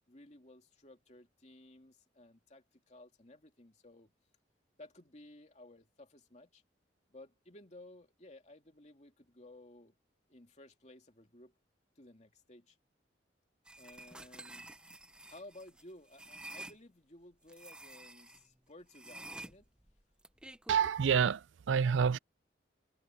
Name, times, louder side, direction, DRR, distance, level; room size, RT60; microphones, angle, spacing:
voice 1, 0.1-4.1 4.8-6.6 7.1-10.0 10.3-11.5 12.0-12.8 13.8-14.7 15.3-19.7, left 1 dB, 35° left, 2.7 m, -56 dB
sound 1, 13.7-16.8 17.5-18.4 18.9-20.9, right 2 dB, 5° right, 0.7 m, -50 dB
voice 2, 20.7-22.2, right 7 dB, 85° right, 0.4 m, -28 dB
head